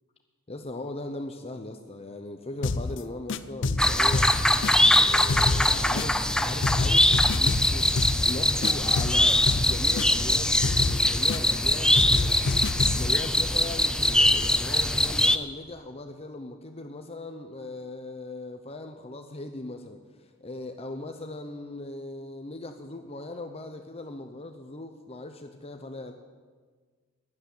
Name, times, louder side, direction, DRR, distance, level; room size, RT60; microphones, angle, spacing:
voice 1, 0.5-4.3 4.9-7.9 8.3-26.1, left 2 dB, 30° left, 6 dB, 0.9 m, -39 dB
sound 1, 2.6-3.0 3.3-5.0 5.3-6.3 6.6-8.3 8.6-10.3 10.6-11.7 11.9-13.2, left 3 dB, 60° left, 0.6 m, -28 dB
sound 2, 3.8-15.4, left 1 dB, 5° left, 0.5 m, -22 dB
13.0 x 11.0 x 9.7 m, 1.5 s
head